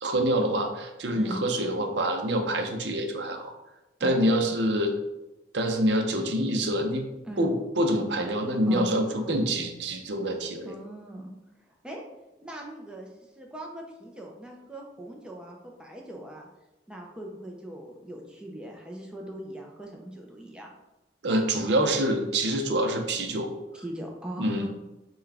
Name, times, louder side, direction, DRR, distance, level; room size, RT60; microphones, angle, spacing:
voice 1, 0.0-3.5 4.0-4.9 5.5-7.1 7.4-10.7 21.2-23.5 24.4-24.7, right 1 dB, 80° right, 4 dB, 0.6 m, -26 dB
voice 2, 8.7-9.4 10.6-11.3 11.6-12.0 12.4-13.1 13.4-16.5 16.9-20.7 23.7-24.7, right 1 dB, 5° right, -1 dB, 0.5 m, -40 dB
5.7 x 2.3 x 3.3 m, 0.99 s
head